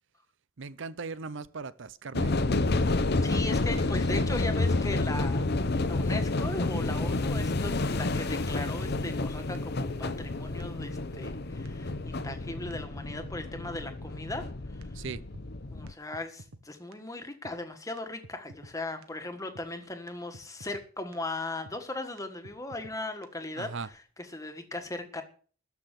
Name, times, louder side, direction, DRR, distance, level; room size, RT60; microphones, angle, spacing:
voice 1, 0.6-2.8 15.0-15.2 23.6-23.9, right 4 dB, 60° right, 0.6 m, -39 dB
sound 1, 2.1-15.9, left 2 dB, 50° left, 0.8 m, -29 dB
voice 2, 3.2-14.9 15.7-25.2, left 2 dB, 15° left, 1.5 m, -38 dB
sound 2, 7.4-7.5 7.7-8.2 8.5-8.6 9.0-9.1 9.5-9.6 9.8-10.3 10.6-10.7 11.1-11.2 11.6-11.7 11.9-12.4 12.7-12.8 13.2-13.3 13.8-14.5 14.8-14.9 15.3-15.5 15.9-16.0 16.1-16.6 16.9-17.0 17.4-17.6 18.0-18.1 18.2-18.7 19.0-19.1 19.5-19.7 20.1-20.2 20.3-20.8 21.1-21.2 21.7-21.8 22.2-22.3 22.4-23.0 23.2-23.3, right 2 dB, 85° right, 1.3 m, -49 dB
13.5 x 5.9 x 9.1 m
head